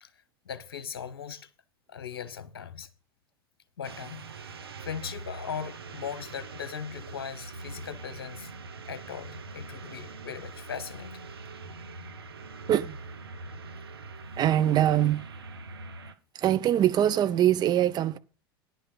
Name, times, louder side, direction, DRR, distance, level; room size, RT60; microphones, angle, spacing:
voice 1, 0.4-1.5 1.9-2.9 3.8-4.3 4.8-8.5 8.8-11.3, left 7 dB, 70° left, 1.0 m, -39 dB
sound 1, 3.8-16.1, right 3 dB, 80° right, 1.0 m, -43 dB
voice 2, 12.7-13.0 14.4-15.2 16.3-18.2, right 11 dB, 35° right, 0.7 m, -23 dB
10.5 x 5.9 x 6.8 m
figure-of-eight pair, 80°, 13 cm